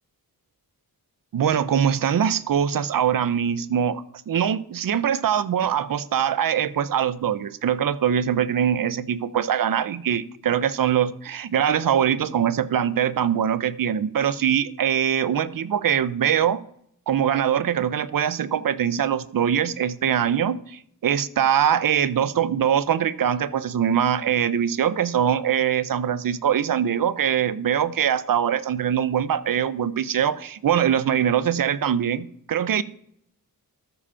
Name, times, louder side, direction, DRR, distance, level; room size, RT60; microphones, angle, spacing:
voice 1, 1.3-16.6 17.1-32.8, right 9 dB, 65° right, 16 dB, 0.6 m, -23 dB
13.0 x 5.0 x 5.6 m, 0.69 s
wide cardioid pair, 130°, 37 cm